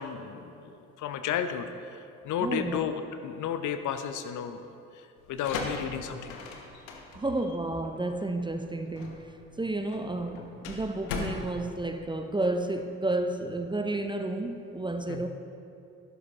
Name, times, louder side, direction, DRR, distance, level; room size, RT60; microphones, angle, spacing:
voice 1, 0.0-4.7 4.9-6.4 15.1-15.2, left 8 dB, 50° left, 9 dB, 0.7 m, -33 dB
voice 2, 2.4-2.8 7.1-15.3, right 2 dB, 10° right, 6 dB, 0.6 m, -31 dB
sound 1, 5.2-12.8, left 4 dB, 70° left, 1.0 m, -39 dB
11.5 x 11.0 x 3.0 m, 2.6 s
figure-of-eight pair, 45°, 40 cm